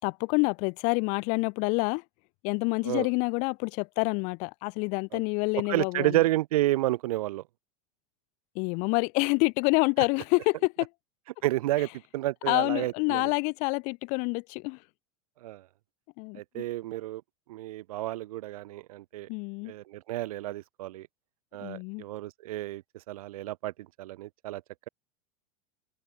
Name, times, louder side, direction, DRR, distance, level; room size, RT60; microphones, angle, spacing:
voice 1, 0.0-2.0 2.4-6.2 8.6-10.9 12.5-14.8 16.2-16.6 19.3-19.7 21.6-22.0, left 32 dB, 40° left, 3.8 m, -27 dB
voice 2, 5.7-7.4 11.4-13.3 15.4-15.6 16.3-17.2 17.5-19.3 19.6-21.1 21.5-24.6, right 16 dB, 80° right, 2.1 m, -30 dB
supercardioid pair, 175°, 18 cm